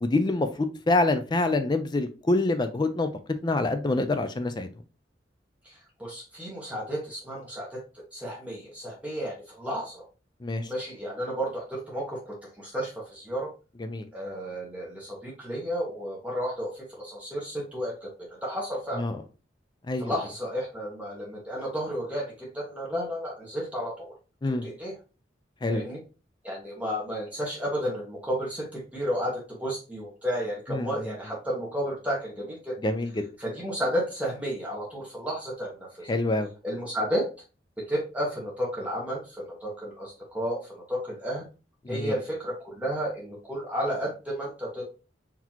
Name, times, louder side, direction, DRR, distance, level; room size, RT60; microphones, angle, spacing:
voice 1, 0.0-3.1 3.4-4.7 10.4-10.7 13.8-14.1 19.0-19.2 19.9-20.1 24.4-24.7 25.6-25.8 30.7-31.1 32.8-33.2 36.1-36.5 41.8-42.1, left 2 dB, 25° left, 9 dB, 0.4 m, -26 dB
voice 2, 5.6-10.0 10.7-13.5 14.1-18.1 18.4-19.0 20.0-24.1 24.6-24.9 25.7-26.0 26.4-32.8 33.4-36.2 36.6-37.3 37.8-41.4 41.9-44.8, equal, 10° right, -4 dB, 1.1 m, -32 dB
4.0 x 2.8 x 2.9 m, 0.32 s
head